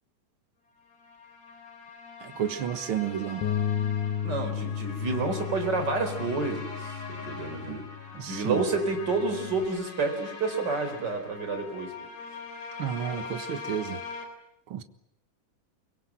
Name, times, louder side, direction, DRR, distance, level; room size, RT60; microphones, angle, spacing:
sound 1, 0.9-14.3, left 4 dB, 60° left, 5.1 m, -42 dB
voice 1, 2.2-3.4 7.7-7.8 8.1-8.6 12.8-14.0 14.7-14.8, right 9 dB, 50° right, 1.9 m, -31 dB
Bass guitar, 3.4-9.7, left 9 dB, 75° left, 3.5 m, -34 dB
voice 2, 4.2-6.7 7.1-7.9 8.3-11.9, right 3 dB, 30° right, 4.6 m, -29 dB
24.0 x 23.5 x 8.9 m
omnidirectional pair, 3.7 m